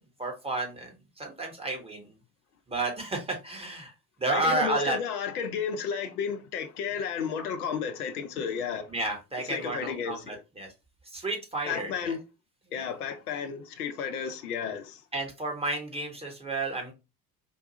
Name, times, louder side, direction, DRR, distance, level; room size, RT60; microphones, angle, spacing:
voice 1, 0.2-0.9 1.2-2.1 2.7-3.9 4.2-5.0 8.9-10.7 11.1-12.1 12.7-12.9 15.1-16.9, right 2 dB, 15° right, 1.2 m, -31 dB
voice 2, 4.3-8.9 9.4-10.4 11.7-12.2 12.7-15.0, left 7 dB, 70° left, 0.8 m, -32 dB
4.6 x 2.3 x 2.7 m
figure-of-eight pair, 65°, 46 cm